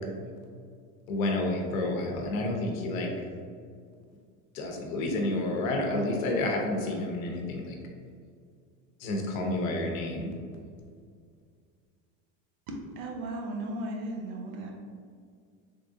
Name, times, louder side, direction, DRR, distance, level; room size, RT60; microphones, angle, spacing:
voice 1, 1.1-3.1 4.5-7.7 9.0-10.3, left 2 dB, 90° left, 1 dB, 0.9 m, -30 dB
voice 2, 12.7-14.7, right 1 dB, 60° right, 0 dB, 0.9 m, -36 dB
3.7 x 3.4 x 2.6 m, 2.1 s
supercardioid pair, 110°, 40 cm